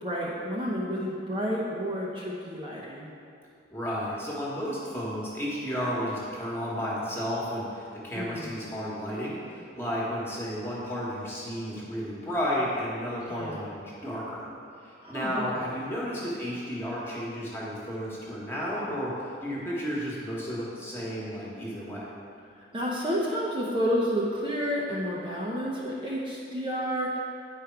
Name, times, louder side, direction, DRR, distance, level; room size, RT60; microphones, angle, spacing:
voice 1, 0.0-3.1 8.1-8.5 13.3-13.7 15.0-15.7 22.6-27.2, equal, 25° right, -6 dB, 0.9 m, -30 dB
voice 2, 3.7-14.5 14.8-22.0, equal, 15° left, -6 dB, 1.5 m, -32 dB
9.7 x 5.1 x 4.7 m, 2.5 s
head